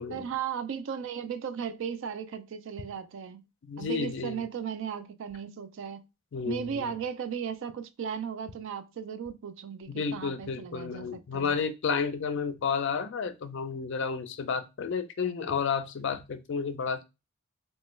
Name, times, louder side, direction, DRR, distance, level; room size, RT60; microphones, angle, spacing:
voice 1, 0.1-3.5 3.8-6.1 6.4-11.6, right 7 dB, 65° right, 0.3 m, -36 dB
voice 2, 3.6-4.4 6.3-6.8 10.0-17.0, left 5 dB, 60° left, 0.4 m, -31 dB
3.0 x 2.2 x 3.1 m
head